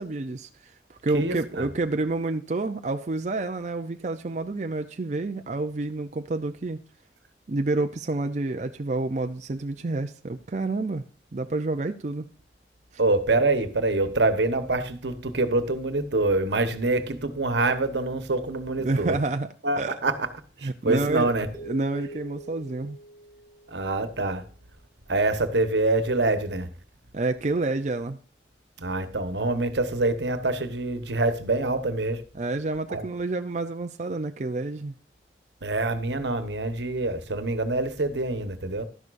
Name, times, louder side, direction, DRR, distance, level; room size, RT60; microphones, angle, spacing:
voice 1, 0.0-6.8 7.5-11.0 11.3-12.3 18.8-19.5 19.8-20.0 20.6-21.3 21.7-23.0 27.1-28.2 32.3-34.9, right 2 dB, 40° right, 0.5 m, -29 dB
voice 2, 1.1-1.7 13.0-19.2 19.6-20.3 20.6-21.5 23.7-24.4 25.1-26.7 28.8-32.2 32.9-33.0 35.6-38.8, right 2 dB, 85° right, 1.2 m, -25 dB
sound 1, 21.5-24.1, right 1 dB, 25° right, 1.3 m, -42 dB
12.0 x 11.0 x 2.5 m
head